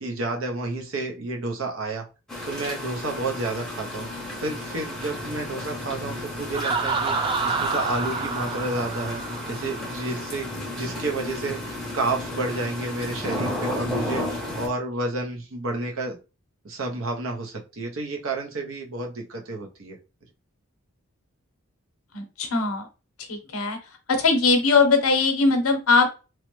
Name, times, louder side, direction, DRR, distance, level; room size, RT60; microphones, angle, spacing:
voice 1, 0.0-2.1 2.4-4.1 4.4-9.2 9.5-16.2 16.6-20.0, right 2 dB, 70° right, 2 dB, 0.7 m, -30 dB
sound 1, 2.3-14.7, left 1 dB, ahead, 0.7 m, -33 dB
Laughter, 6.5-10.2, right 4 dB, 25° right, 0.3 m, -28 dB
voice 2, 22.1-22.8 23.3-23.8 24.2-26.1, left 4 dB, 80° left, 6 dB, 0.7 m, -20 dB
3.1 x 2.1 x 3.0 m, 0.30 s
head